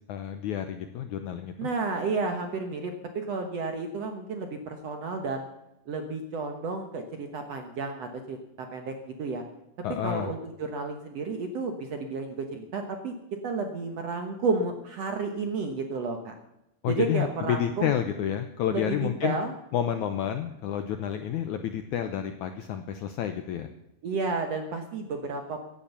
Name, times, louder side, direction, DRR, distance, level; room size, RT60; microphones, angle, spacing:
voice 1, 0.1-1.5 9.8-10.3 16.8-19.4 19.7-23.7, left 9 dB, 75° left, 8 dB, 1.8 m, -29 dB
voice 2, 1.6-5.5 5.9-8.9 9.2-9.4 10.0-13.1 13.4-16.3 16.9-17.9 18.7-19.5 24.0-25.6, right 4 dB, 60° right, 5 dB, 1.8 m, -32 dB
16.5 x 10.0 x 6.9 m, 0.87 s
omnidirectional pair, 4.4 m